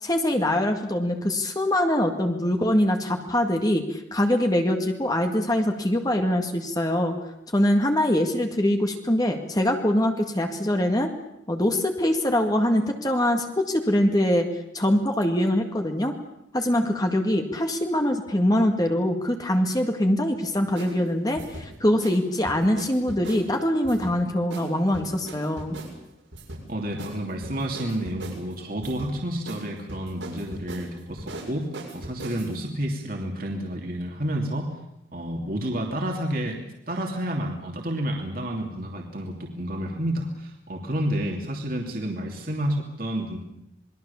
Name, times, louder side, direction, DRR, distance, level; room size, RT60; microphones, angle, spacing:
voice 1, 0.0-7.1 7.5-11.1 11.5-14.5 14.7-16.1 16.5-25.8, left 1 dB, 20° left, 4 dB, 1.9 m, -23 dB
sound 1, 20.8-20.9 21.4-21.7 22.0-22.2 22.4-23.4 23.8-24.2 24.5-24.7 24.9-25.9 26.3-26.6 27.0-27.2 27.4-28.4 28.8-29.1 29.5-29.6 29.9-32.5, right 1 dB, 85° right, 7.0 m, -39 dB
voice 2, 26.7-31.6 31.9-34.7 35.1-36.6 36.9-43.4, right 1 dB, 50° right, 1 dB, 2.9 m, -30 dB
27.5 x 21.5 x 7.1 m, 0.81 s
head